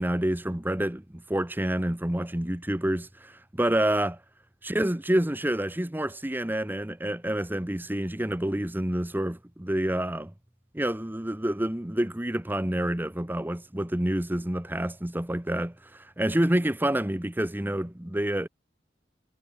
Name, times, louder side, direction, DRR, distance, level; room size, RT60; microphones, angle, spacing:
voice 1, 0.0-4.2 4.7-10.3 10.7-18.5, right 1 dB, 10° right, 0.9 m, -28 dB
head